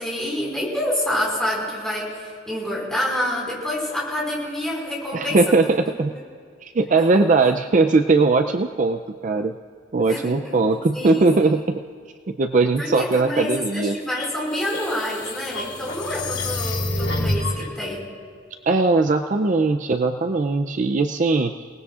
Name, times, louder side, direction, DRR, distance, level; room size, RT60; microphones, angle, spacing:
voice 1, 0.0-5.4 10.1-10.6 10.9-11.6 12.8-18.0, left 1 dB, 5° left, -5 dB, 5.0 m, -27 dB
voice 2, 5.1-6.1 6.6-9.6 9.9-11.8 12.3-14.0 18.7-21.7, right 3 dB, 40° right, 7 dB, 0.4 m, -20 dB
sound 1, 14.2-17.7, left 2 dB, 70° left, 4.4 m, -27 dB
29.5 x 19.0 x 2.5 m, 2.2 s
head